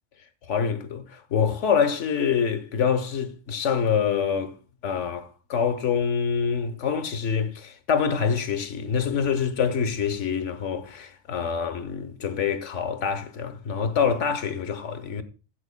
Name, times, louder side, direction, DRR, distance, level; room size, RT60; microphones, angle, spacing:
voice 1, 0.5-4.5 4.8-15.2, left 6 dB, 70° left, 1.3 m, -26 dB
15.5 x 8.9 x 2.2 m
omnidirectional pair, 1.3 m